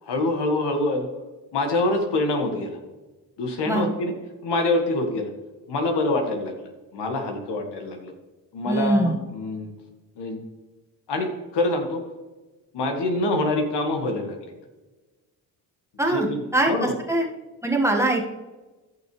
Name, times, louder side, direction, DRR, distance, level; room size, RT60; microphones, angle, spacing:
voice 1, 0.0-1.1 1.5-2.8 3.4-4.1 4.4-5.3 5.7-6.5 6.9-8.1 8.5-9.7 10.2-10.4 11.1-12.0 12.7-14.4 16.1-16.9, left 2 dB, 65° left, 4 dB, 1.8 m, -25 dB
voice 2, 8.7-9.2 16.0-16.3 16.5-17.2 17.6-18.2, right 1 dB, 5° right, 0 dB, 1.6 m, -22 dB
15.0 x 6.1 x 3.2 m, 1.2 s
hypercardioid pair, 55°, 44 cm